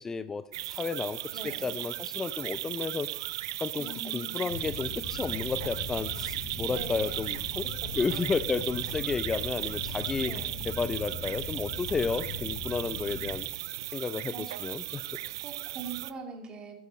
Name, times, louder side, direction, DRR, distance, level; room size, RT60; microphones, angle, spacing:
voice 1, 0.0-1.2 1.4-3.1 3.6-7.6 8.0-10.3 10.6-13.5 13.9-15.0, left 5 dB, 20° left, 13 dB, 0.5 m, -32 dB
sound 1, 0.5-16.1, right 15 dB, 70° right, 0.5 m, -36 dB
voice 2, 1.3-1.7 3.8-4.4 6.6-7.3 7.6-8.2 10.2-10.6 14.3-14.4 15.4-16.8, right 4 dB, 35° right, 3 dB, 2.6 m, -43 dB
sound 2, 4.5-13.4, left 5 dB, 65° left, 3.5 m, -40 dB
13.5 x 9.6 x 4.2 m, 0.94 s
hypercardioid pair, 90°, 3 cm